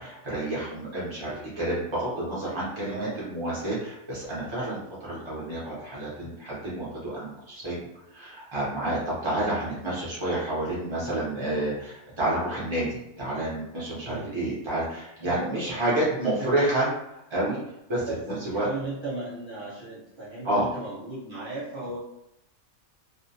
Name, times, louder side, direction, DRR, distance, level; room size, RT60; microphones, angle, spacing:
voice 1, 0.0-7.8 8.1-16.9 17.3-17.6 17.9-18.1 18.4-18.7 20.4-20.7, right 1 dB, 50° right, -8 dB, 0.3 m, -29 dB
voice 2, 2.9-3.2 6.2-6.3 14.0-14.4 15.2-16.7 17.9-22.0, right 2 dB, 25° right, -8 dB, 0.8 m, -36 dB
2.5 x 2.1 x 2.7 m, 0.81 s
omnidirectional pair, 1.5 m